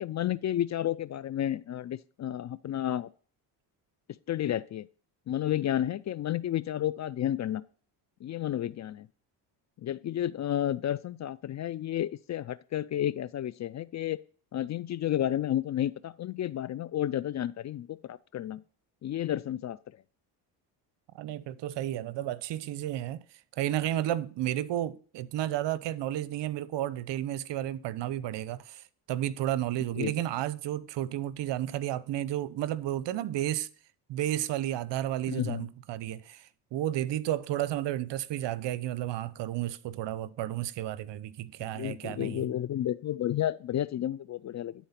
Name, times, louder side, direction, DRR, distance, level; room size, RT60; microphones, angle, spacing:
voice 1, 0.0-3.1 4.3-4.9 5.3-7.7 8.2-9.1 9.8-14.2 14.5-18.6 19.0-19.8 30.0-30.2 35.3-35.7 41.6-44.7, left 11 dB, 40° left, 0.4 m, -31 dB
voice 2, 21.1-23.2 23.6-33.7 34.1-42.4, right 13 dB, 60° right, 0.8 m, -32 dB
10.5 x 4.2 x 5.8 m
supercardioid pair, 70°, 48 cm